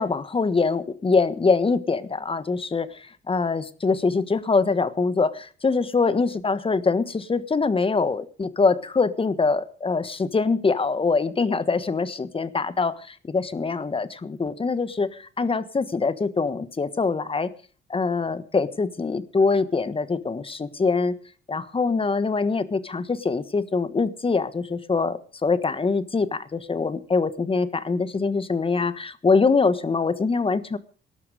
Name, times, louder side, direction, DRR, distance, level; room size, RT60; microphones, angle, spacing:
voice 1, 0.0-17.5 17.9-21.2 21.5-30.8, left 4 dB, 25° left, 14 dB, 1.4 m, -24 dB
19.0 x 12.0 x 5.0 m, 0.41 s
cardioid pair, 90°, 20 cm